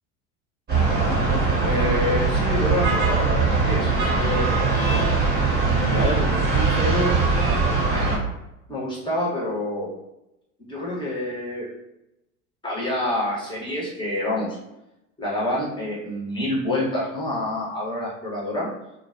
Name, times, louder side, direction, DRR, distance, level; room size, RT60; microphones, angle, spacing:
sound 1, 0.7-8.2, right 4 dB, 25° right, 1.0 m, -21 dB
voice 1, 1.6-5.0 5.6-7.5 7.9-8.1 8.7-9.9 10.6-11.7 12.6-14.6 15.2-18.7, left 1 dB, 10° left, -6 dB, 1.0 m, -27 dB
2.4 x 2.2 x 2.5 m, 0.89 s
hypercardioid pair, 100°, 43 cm